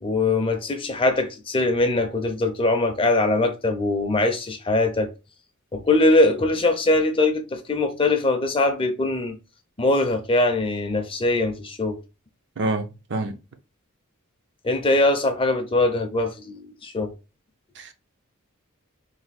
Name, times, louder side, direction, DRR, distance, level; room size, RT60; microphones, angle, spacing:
voice 1, 0.0-5.1 5.7-9.4 9.8-12.0 14.6-17.1, left 2 dB, 25° left, 0.5 m, -22 dB
voice 2, 12.6-13.3 17.8-17.9, right 2 dB, 55° right, 0.6 m, -27 dB
3.3 x 2.5 x 4.0 m
head